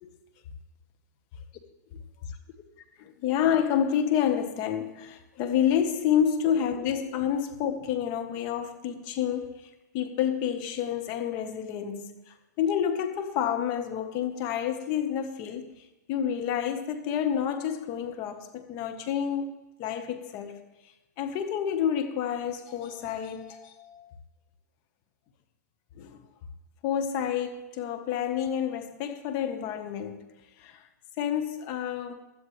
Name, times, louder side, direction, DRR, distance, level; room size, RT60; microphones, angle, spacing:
voice 1, 3.0-9.5 9.9-15.7 16.1-19.5 19.8-20.7 21.2-24.1 26.0-26.2 26.8-30.3 30.6-30.9 31.2-32.1, left 9 dB, 35° left, 1.4 m, -29 dB
16.5 x 12.5 x 3.4 m
hypercardioid pair, 135°, 10 cm